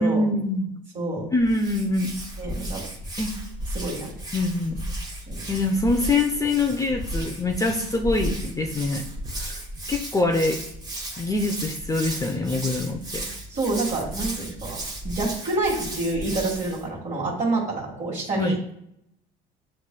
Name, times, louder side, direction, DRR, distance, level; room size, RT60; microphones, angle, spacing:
voice 1, 0.0-0.8 1.3-2.1 3.2-3.3 4.3-4.8 5.5-9.0 9.4-9.6 9.9-10.6 11.2-13.3 18.4-18.6, left 2 dB, 15° left, 3 dB, 0.5 m, -24 dB
voice 2, 0.9-1.3 2.4-2.8 3.7-4.1 5.3-5.5 13.5-14.8 15.0-18.7, right 2 dB, 40° right, -4 dB, 1.6 m, -27 dB
Hands, 1.4-16.8, right 1 dB, 20° right, 1.2 m, -34 dB
6.9 x 3.2 x 2.2 m, 0.74 s
supercardioid pair, 85°, 20 cm